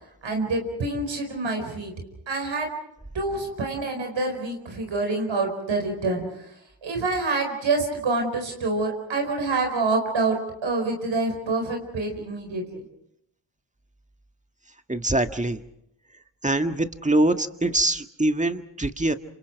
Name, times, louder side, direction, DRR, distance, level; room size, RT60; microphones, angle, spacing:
voice 1, 0.2-1.9 2.3-2.7 3.1-6.2 6.8-12.8, right 3 dB, 85° right, 3 dB, 4.9 m, -26 dB
voice 2, 14.9-15.6 16.4-19.1, right 1 dB, 15° right, 7 dB, 1.7 m, -23 dB
28.0 x 27.0 x 4.7 m, 0.75 s
cardioid pair, 45°, 44 cm